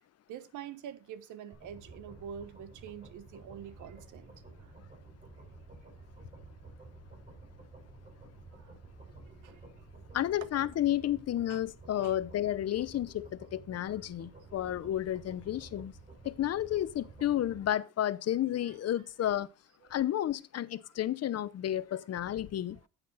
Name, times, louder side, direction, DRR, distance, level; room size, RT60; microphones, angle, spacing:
voice 1, 0.3-4.7 8.5-8.7 9.2-9.6 11.5-11.6 12.0-12.1 19.9-20.0, right 8 dB, 85° right, 1.0 m, -46 dB
sound 1, 1.5-17.7, right 2 dB, 25° right, 4.4 m, -52 dB
voice 2, 10.1-15.9 16.2-19.5 19.9-22.8, left 12 dB, 55° left, 0.8 m, -31 dB
9.5 x 8.4 x 4.0 m
cardioid pair, 90°, 30 cm